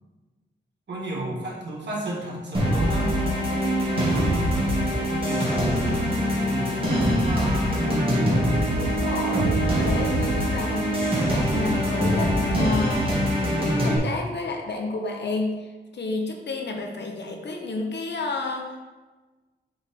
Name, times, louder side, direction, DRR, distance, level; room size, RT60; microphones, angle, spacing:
voice 1, 0.9-3.2 3.8-6.1 6.5-7.8, right 1 dB, 70° right, -4 dB, 1.9 m, -33 dB
sound 1, 2.5-14.0, equal, 30° right, 2.0 m, -23 dB
voice 2, 8.8-13.1 13.8-18.8, left 2 dB, 65° left, 2 dB, 1.0 m, -31 dB
7.8 x 3.7 x 3.7 m, 1.2 s
wide cardioid pair, 90°, 19 cm